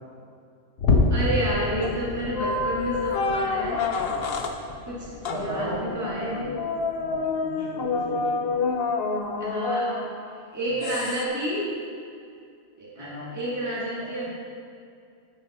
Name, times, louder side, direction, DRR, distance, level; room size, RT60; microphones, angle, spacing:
sound 1, 0.8-7.4 7.8-8.1 8.5-8.7 9.2-9.3, left 3 dB, 80° left, 1.3 m, -29 dB
voice 1, 1.1-3.8 4.7-6.4 9.4-9.9 10.5-11.6 12.8-14.3, right 1 dB, 15° right, -8 dB, 1.7 m, -30 dB
sound 2, 1.8-2.1 2.3-4.6 5.2-5.5 6.2-10.4 10.8-11.2, left 3 dB, 60° left, 0.9 m, -28 dB
voice 2, 5.2-6.5 7.0-8.6 10.7-10.8 13.0-13.3, equal, 30° right, -7 dB, 2.1 m, -35 dB
9.8 x 7.8 x 4.2 m, 2.4 s
omnidirectional pair, 1.2 m